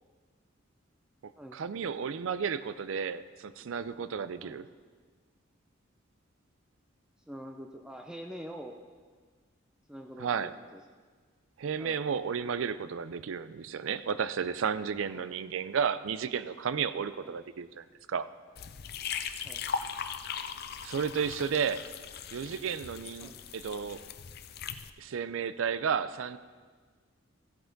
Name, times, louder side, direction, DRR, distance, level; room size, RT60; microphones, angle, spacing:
voice 1, 1.2-4.7 10.2-10.5 11.6-18.3 20.8-21.9 22.3-24.0 25.0-26.4, right 6 dB, 75° right, 14 dB, 0.4 m, -33 dB
voice 2, 7.3-8.8 9.9-10.8 11.8-12.0 15.1-15.3 17.2-17.4 19.4-19.6 23.2-23.4, equal, 5° right, 2 dB, 0.5 m, -45 dB
sound 1, 18.6-24.9, left 7 dB, 50° left, 0.5 m, -39 dB
15.0 x 7.8 x 3.9 m, 1.5 s
head